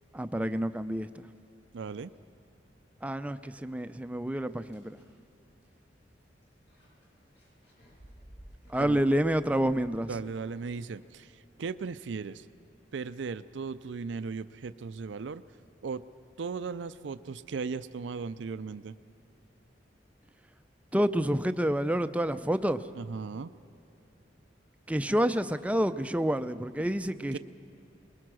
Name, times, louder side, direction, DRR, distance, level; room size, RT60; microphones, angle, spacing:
voice 1, 0.1-1.3 3.0-5.0 8.7-10.1 20.9-22.9 24.9-27.4, equal, 10° right, 11 dB, 0.5 m, -28 dB
voice 2, 1.7-2.1 8.7-9.0 10.1-12.5 12.9-15.4 15.8-16.0 16.4-18.9 23.0-23.5 27.3-27.4, right 5 dB, 80° right, 13 dB, 0.5 m, -37 dB
sound 1, 4.3-10.6, equal, 70° left, 6.4 m, -56 dB
22.0 x 21.5 x 6.2 m, 2.8 s
head